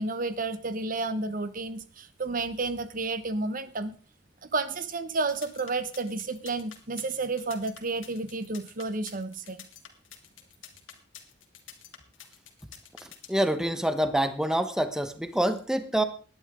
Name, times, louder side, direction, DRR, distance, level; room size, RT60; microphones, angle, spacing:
voice 1, 0.0-3.9 4.4-9.6, right 3 dB, 45° right, 12 dB, 0.9 m, -31 dB
sound 1, 5.2-13.5, left 10 dB, 85° left, 2.7 m, -48 dB
voice 2, 13.3-16.0, right 1 dB, 5° right, 9 dB, 1.1 m, -26 dB
18.5 x 11.0 x 3.7 m, 0.38 s
head